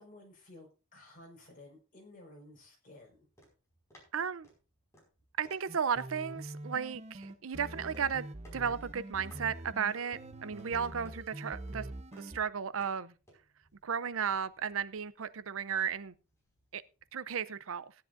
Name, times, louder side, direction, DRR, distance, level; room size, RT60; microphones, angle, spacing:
voice 1, 0.0-3.3, left 1 dB, 40° left, 0 dB, 5.0 m, -54 dB
sound 1, 3.0-17.1, equal, 15° left, 5.2 m, -65 dB
voice 2, 4.1-4.5 5.4-8.3 8.5-11.9 12.2-13.1 13.8-16.1 16.7-16.8 17.1-17.9, right 7 dB, 70° right, 16 dB, 0.6 m, -34 dB
sound 2, 5.7-12.4, right 1 dB, 30° right, 0.8 m, -45 dB
17.5 x 10.5 x 2.6 m, 0.32 s
head